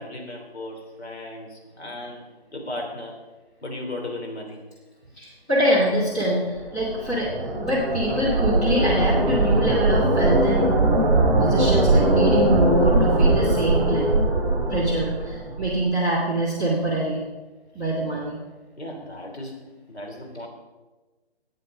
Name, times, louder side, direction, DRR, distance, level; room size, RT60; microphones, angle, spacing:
voice 1, 0.0-2.2 2.5-3.2 3.6-4.6 18.8-20.5, left 1 dB, 80° left, 2 dB, 3.2 m, -36 dB
voice 2, 5.2-10.7 11.4-14.1 14.7-17.2 17.7-18.4, right 1 dB, 5° left, -8 dB, 0.9 m, -24 dB
sound 1, 6.6-15.8, right 2 dB, 25° right, 2.2 m, -21 dB
11.0 x 9.2 x 5.2 m, 1.2 s
hypercardioid pair, 170°, 32 cm